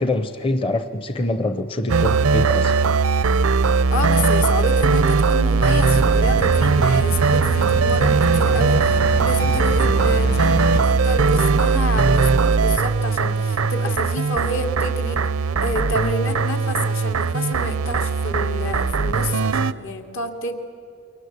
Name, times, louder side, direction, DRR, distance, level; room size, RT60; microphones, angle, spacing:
voice 1, 0.0-2.7, left 2 dB, 25° left, 10 dB, 0.7 m, -24 dB
sound 1, 1.9-19.7, right 4 dB, 90° right, 0.6 m, -19 dB
voice 2, 3.9-15.2 15.6-20.5, left 1 dB, 75° left, 5 dB, 2.5 m, -29 dB
sound 2, 5.8-10.8, equal, 45° left, 1.8 m, -29 dB
29.0 x 23.0 x 8.2 m, 2.5 s
head